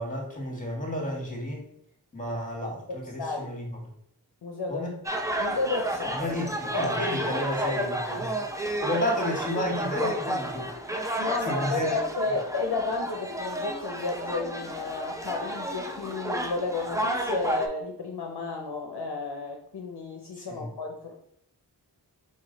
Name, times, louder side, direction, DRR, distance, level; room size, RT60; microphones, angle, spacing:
voice 1, 0.0-1.6 2.1-3.7 4.7-5.0 6.2-8.3 8.8-11.9 20.4-20.7, left 1 dB, 20° left, 1 dB, 1.6 m, -32 dB
voice 2, 3.2-3.5 4.4-6.2 7.3-7.4 7.6-7.9 11.2-21.1, left 3 dB, 65° left, 2 dB, 0.7 m, -32 dB
sound 1, 5.0-17.7, right 1 dB, 5° right, 0.6 m, -31 dB
4.2 x 3.1 x 3.9 m, 0.71 s
wide cardioid pair, 40°, 43 cm